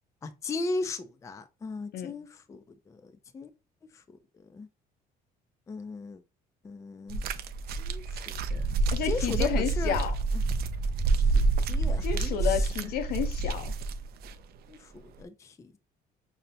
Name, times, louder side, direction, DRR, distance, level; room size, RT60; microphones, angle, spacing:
voice 1, 0.2-2.6 3.3-3.5 4.5-4.7 5.7-6.2 6.6-7.2 7.8-8.6 9.0-10.0 11.7-12.4 14.7-14.8 15.2-15.5, left 3 dB, 20° left, 0.3 m, -36 dB
sound 1, 7.1-14.3 15.2-15.3, right 3 dB, 65° right, 0.4 m, -28 dB
voice 2, 8.9-10.2 12.0-13.7, left 9 dB, 65° left, 0.6 m, -31 dB
5.4 x 2.0 x 2.6 m
cardioid pair, 110°, 17 cm